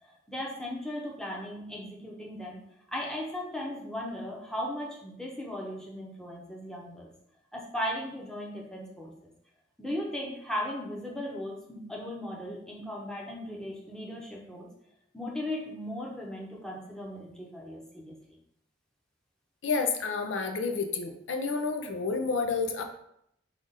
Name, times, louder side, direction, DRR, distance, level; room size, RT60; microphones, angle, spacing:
voice 1, 0.0-2.6 2.9-7.1 7.5-9.1 9.8-14.7 15.1-18.4, left 1 dB, 5° left, -3 dB, 0.7 m, -37 dB
voice 2, 19.6-22.8, left 4 dB, 80° left, 6 dB, 0.5 m, -30 dB
5.0 x 2.4 x 3.9 m, 0.75 s
head